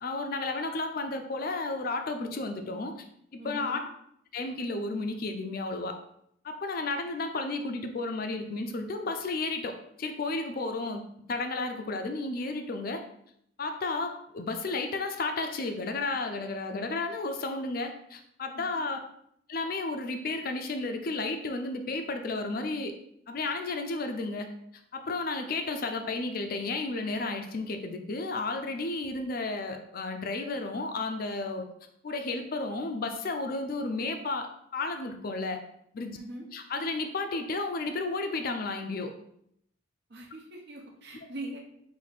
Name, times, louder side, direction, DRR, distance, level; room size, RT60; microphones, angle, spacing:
voice 1, 0.0-3.1 3.3-3.9 4.3-6.0 6.4-13.0 13.6-19.0 19.5-22.9 23.3-24.5 24.9-31.7 32.0-35.6 35.9-36.2 36.5-39.1, left 3 dB, 45° left, 6 dB, 0.4 m, -33 dB
voice 2, 3.4-3.8 18.5-18.8 36.1-36.5 40.1-41.6, right 1 dB, 55° right, 0 dB, 0.9 m, -42 dB
4.2 x 2.7 x 4.0 m, 0.71 s
head